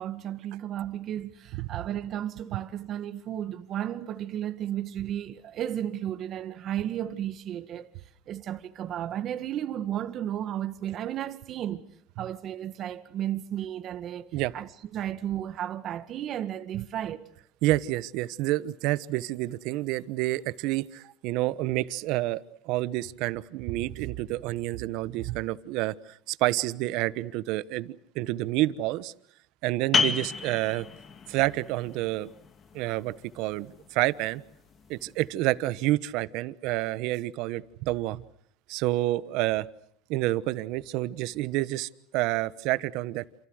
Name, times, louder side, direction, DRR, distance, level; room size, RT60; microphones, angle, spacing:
voice 1, 0.0-7.9 8.3-11.8 12.2-14.3 14.5-17.3, right 11 dB, 45° right, 1.7 m, -33 dB
voice 2, 17.6-22.4 22.6-29.1 29.6-30.9 31.3-32.3 32.7-34.4 34.9-38.2 38.7-39.7 40.1-43.2, right 17 dB, 70° right, 1.1 m, -29 dB
sound 1, 29.9-35.3, left 5 dB, 35° left, 2.4 m, -33 dB
28.5 x 28.0 x 6.5 m
supercardioid pair, 120°, 0 cm